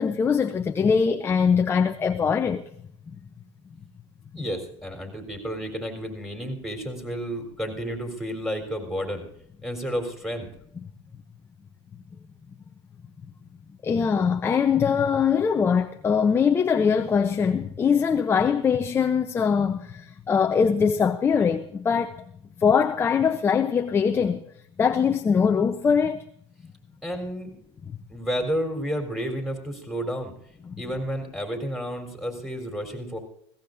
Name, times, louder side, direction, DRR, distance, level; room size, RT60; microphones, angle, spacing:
voice 1, 0.0-2.6 13.8-22.2 22.6-24.4 24.8-26.3 30.7-30.8, left 6 dB, 15° left, 0.7 m, -22 dB
voice 2, 4.3-9.2 9.6-10.5 27.0-27.5 28.1-30.3 30.8-33.2, equal, ahead, 3.9 m, -31 dB
21.0 x 17.0 x 2.6 m
hypercardioid pair, 125°, 16 cm